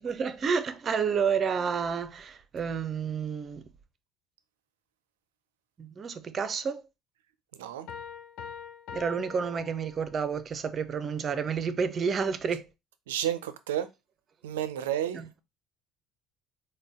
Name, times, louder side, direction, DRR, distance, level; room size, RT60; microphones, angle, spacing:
voice 1, 0.0-3.6 5.8-6.8 8.9-12.6 15.1-15.3, right 6 dB, 40° right, 0.6 m, -30 dB
Piano, 7.9-10.4, left 7 dB, 65° left, 0.4 m, -43 dB
voice 2, 13.1-13.9 14.4-15.2, right 11 dB, 85° right, 0.4 m, -31 dB
3.9 x 2.2 x 3.6 m
hypercardioid pair, 65°, 0 cm